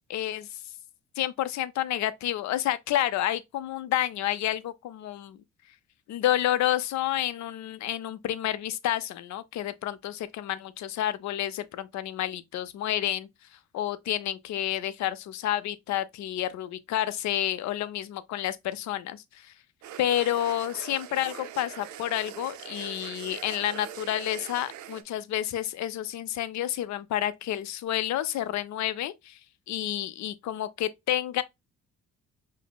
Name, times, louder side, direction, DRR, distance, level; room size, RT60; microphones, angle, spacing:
voice 1, 0.1-0.6 1.2-5.4 6.1-13.3 13.7-19.5 20.0-29.4 29.7-31.4, left 12 dB, 65° left, 0.5 m, -30 dB
sound 1, 19.8-25.0, right 10 dB, 70° right, 0.5 m, -42 dB
5.1 x 2.0 x 2.2 m
cardioid pair, 90°, 30 cm